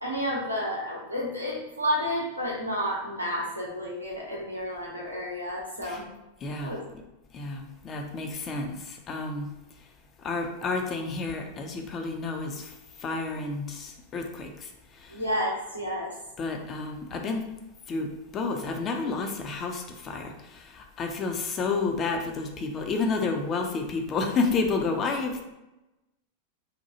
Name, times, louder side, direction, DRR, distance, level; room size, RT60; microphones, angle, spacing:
voice 1, 0.0-6.0 6.6-6.8 15.1-16.1, equal, 90° right, -4 dB, 0.8 m, -31 dB
voice 2, 6.4-6.7 7.3-9.5 9.8-9.9 10.2-15.3 16.4-17.4 17.9-18.1 18.3-25.4, left 3 dB, 30° left, 3 dB, 0.4 m, -30 dB
2.8 x 2.2 x 2.7 m, 0.97 s
figure-of-eight pair, 90°, 0 cm